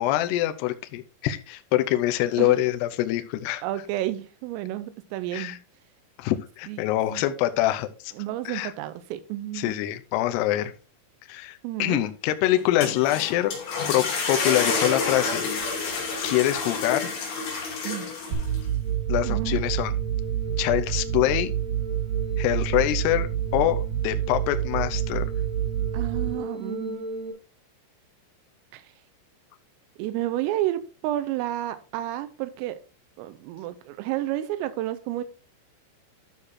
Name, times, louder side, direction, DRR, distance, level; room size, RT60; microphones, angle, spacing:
voice 1, 0.0-3.6 5.3-5.6 6.2-8.1 8.5-8.7 9.5-10.7 11.3-13.5 13.9-15.5 16.2-17.1 19.1-19.9 20.6-21.5 22.4-25.3, left 14 dB, 85° left, 2.4 m, -25 dB
voice 2, 3.6-5.6 6.7-6.8 7.1-7.2 8.2-9.8 11.6-12.1 17.8-18.2 19.2-19.6 25.9-27.1 28.7-28.9 30.0-32.8 33.2-35.2, right 14 dB, 85° right, 3.3 m, -31 dB
sound 1, 12.6-18.6, left 4 dB, 55° left, 4.6 m, -29 dB
sound 2, 18.3-27.3, right 9 dB, 50° right, 3.1 m, -28 dB
13.0 x 6.6 x 2.8 m
omnidirectional pair, 5.8 m